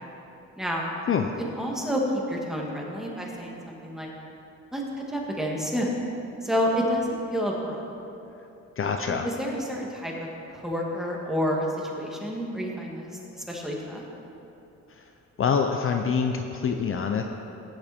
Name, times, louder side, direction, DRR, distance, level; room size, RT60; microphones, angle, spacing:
voice 1, 0.6-0.9 1.4-2.0 2.3-4.1 4.7-4.8 5.1-6.0 6.4-7.8 9.1-10.3 10.5-13.1 13.5-14.0, equal, ahead, -2 dB, 2.3 m, -29 dB
voice 2, 8.8-9.3 15.4-17.2, left 6 dB, 45° left, 4 dB, 0.7 m, -25 dB
18.0 x 7.5 x 4.5 m, 2.9 s
cardioid pair, 90°, 30 cm